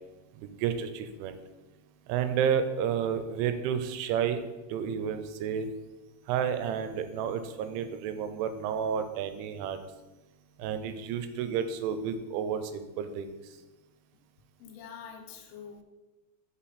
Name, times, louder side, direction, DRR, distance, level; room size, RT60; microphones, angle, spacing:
voice 1, 0.3-1.4 2.1-4.4 4.7-5.7 6.3-9.8 10.6-13.6, right 8 dB, 85° right, 9 dB, 3.0 m, -31 dB
voice 2, 14.6-15.8, left 7 dB, 85° left, 3 dB, 3.5 m, -45 dB
6.0 x 5.8 x 4.1 m, 1.1 s
omnidirectional pair, 5.4 m